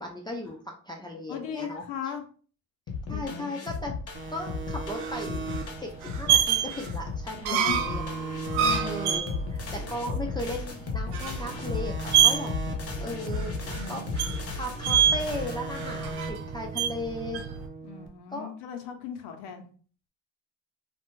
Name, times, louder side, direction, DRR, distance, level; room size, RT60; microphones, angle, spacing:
voice 1, 0.0-2.1 3.1-5.5 5.8-8.2 8.6-12.5 13.0-14.0 14.5-17.4 18.3-18.5, left 1 dB, 10° left, -1 dB, 0.3 m, -37 dB
voice 2, 1.3-2.2 3.1-3.5 7.5-7.8 8.5-9.1 13.8-14.0 17.8-19.7, left 8 dB, 80° left, 4 dB, 0.6 m, -37 dB
sound 1, 2.9-16.1, left 4 dB, 40° left, 0.7 m, -35 dB
sound 2, 4.1-7.4 7.7-11.0 11.3-14.5 14.8-18.1, right 3 dB, 30° right, 0.6 m, -39 dB
sound 3, 4.3-17.7, right 9 dB, 80° right, 0.6 m, -28 dB
2.5 x 2.1 x 3.0 m, 0.42 s
cardioid pair, 95°, 39 cm